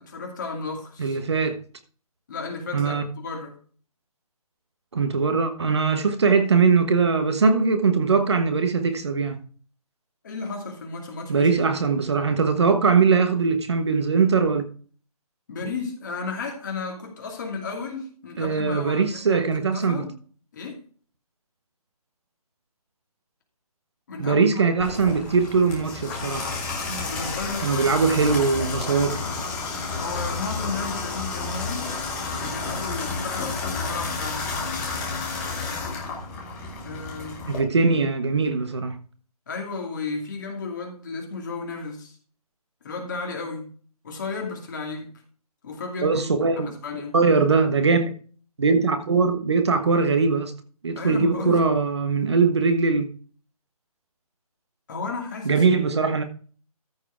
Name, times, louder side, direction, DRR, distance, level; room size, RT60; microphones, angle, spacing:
voice 1, 0.0-1.2 2.3-3.6 10.2-11.8 15.5-20.1 20.5-20.8 24.1-24.6 26.7-28.0 30.0-31.9 32.4-34.6 36.8-37.5 39.5-42.2 42.8-43.7 44.0-45.2 45.6-46.2 46.6-47.2 50.9-51.6 54.9-55.8, left 4 dB, 30° left, 2.4 m, -34 dB
voice 2, 1.0-1.6 2.7-3.0 4.9-9.4 11.3-14.6 18.4-20.0 24.2-26.5 27.6-29.2 37.5-39.0 46.0-46.7 47.1-48.1 48.6-50.5 50.8-53.0 55.4-56.2, right 4 dB, 45° right, 1.2 m, -21 dB
Water tap faucet / Bathtub (filling or washing), 24.8-37.6, left 4 dB, 5° left, 0.8 m, -31 dB
14.0 x 4.8 x 4.5 m
hypercardioid pair, 170°, 20 cm